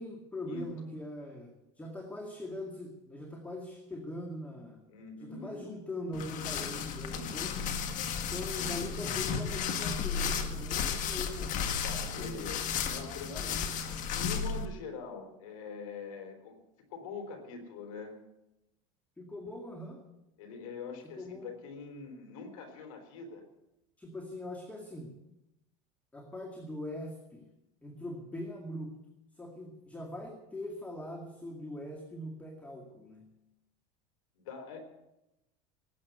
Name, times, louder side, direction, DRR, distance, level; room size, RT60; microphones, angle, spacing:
voice 1, 0.0-1.5 1.8-4.8 5.2-7.5 8.3-11.6 12.3-12.5 13.3-13.5 19.2-20.0 21.2-21.5 24.0-25.1 26.1-27.4 27.8-28.9 29.4-33.2, left 1 dB, 10° left, 1 dB, 2.2 m, -41 dB
voice 2, 4.9-5.7 7.0-7.4 8.5-8.8 11.8-16.6 16.9-18.2 20.4-23.4 34.4-34.8, left 4 dB, 90° left, 5 dB, 3.9 m, -44 dB
sound 1, 6.1-14.7, left 7 dB, 50° left, 1.7 m, -34 dB
18.5 x 8.6 x 8.0 m, 0.92 s
supercardioid pair, 130°, 17 cm